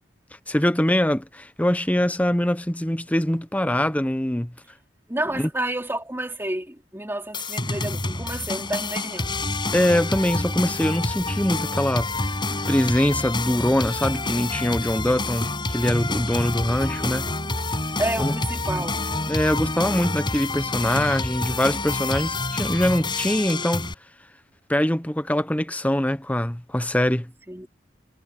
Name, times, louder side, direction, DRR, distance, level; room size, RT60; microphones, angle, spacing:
voice 1, 0.5-4.5 5.4-5.5 9.7-12.1 12.7-17.2 18.2-18.3 18.8-18.9 19.3-23.9 24.7-27.3, left 1 dB, 10° left, 0.8 m, -23 dB
voice 2, 5.1-9.3 17.0-17.2 18.0-19.0 27.5-27.7, right 1 dB, 10° right, 3.0 m, -30 dB
sound 1, 7.3-23.9, left 2 dB, 25° left, 6.3 m, -28 dB
head